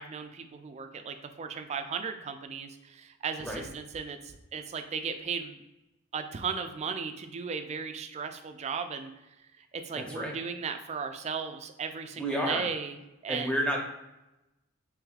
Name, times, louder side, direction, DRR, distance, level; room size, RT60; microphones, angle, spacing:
voice 1, 0.0-5.6 6.1-9.1 9.6-13.0 13.2-13.7, right 5 dB, 30° right, 7 dB, 0.3 m, -36 dB
voice 2, 10.0-10.3 12.2-12.6 13.3-13.8, equal, 5° left, -1 dB, 0.6 m, -30 dB
4.8 x 3.1 x 2.3 m, 0.95 s
head